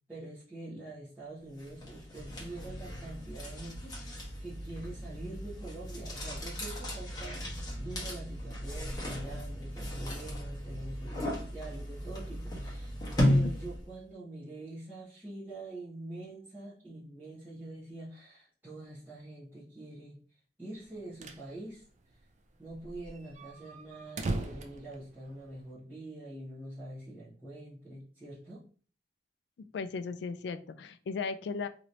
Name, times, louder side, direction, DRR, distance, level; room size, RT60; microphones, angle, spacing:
voice 1, 0.1-13.0 13.2-20.2 20.6-21.8 22.6-28.6, right 2 dB, 10° right, -11 dB, 1.1 m, -45 dB
sound 1, 1.6-14.0, left 1 dB, 25° left, 1.1 m, -35 dB
sound 2, 20.8-21.5 21.8-21.9 22.1-22.2 22.7-25.7, right 2 dB, 45° right, 0.4 m, -39 dB
voice 2, 29.7-31.7, left 5 dB, 70° left, 11 dB, 0.3 m, -36 dB
3.0 x 2.9 x 2.6 m, 0.41 s
head